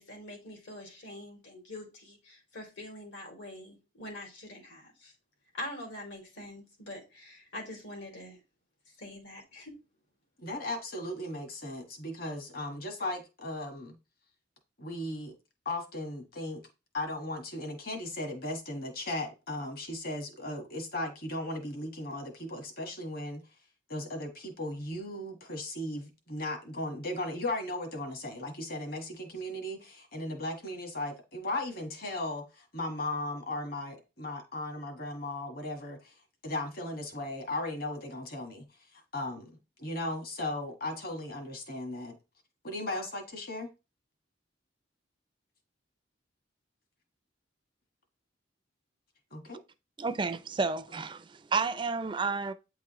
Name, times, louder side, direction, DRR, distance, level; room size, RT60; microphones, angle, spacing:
voice 1, 0.0-5.1 5.5-8.4 9.0-9.8, left 1 dB, 75° left, 2.7 m, -44 dB
voice 2, 10.4-14.0 14.8-15.3 15.6-16.6 16.9-23.4 23.9-36.1 36.4-38.6 39.1-39.5 39.8-42.1 42.6-43.7 49.3-49.6, left 1 dB, 50° left, 1.4 m, -36 dB
voice 3, 50.0-52.5, right 4 dB, 25° right, 0.4 m, -31 dB
8.7 x 4.7 x 3.0 m
head